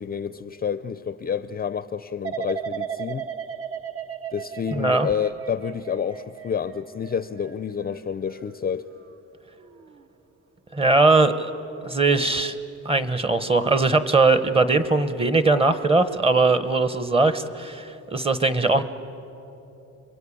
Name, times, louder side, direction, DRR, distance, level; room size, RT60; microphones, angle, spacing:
voice 1, 0.0-3.3 4.3-8.9, left 7 dB, 30° left, 0.5 m, -29 dB
sound 1, 2.2-9.2 9.6-10.0, right 8 dB, 45° right, 0.9 m, -36 dB
voice 2, 4.7-5.1 10.7-11.5 11.8-12.6 12.8-18.8, right 3 dB, 15° right, 1.1 m, -20 dB
30.0 x 23.0 x 8.6 m
cardioid pair, 130°, 32 cm